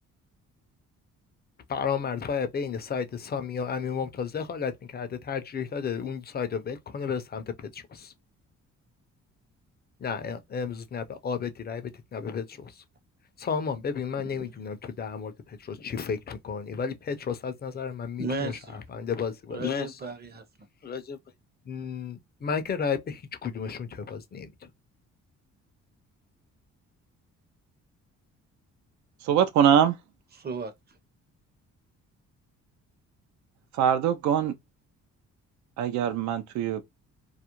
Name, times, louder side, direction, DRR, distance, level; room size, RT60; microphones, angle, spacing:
voice 1, 1.7-8.1 10.0-12.8 13.4-20.0 20.8-21.2 21.7-24.7, left 6 dB, 35° left, 0.5 m, -33 dB
voice 2, 18.2-19.1 19.5-20.4 30.3-31.0, right 3 dB, 30° right, 0.6 m, -35 dB
voice 3, 29.2-30.0 33.7-34.5 35.8-36.8, right 9 dB, 70° right, 0.4 m, -23 dB
2.4 x 2.0 x 2.9 m
cardioid pair, 90°, 30 cm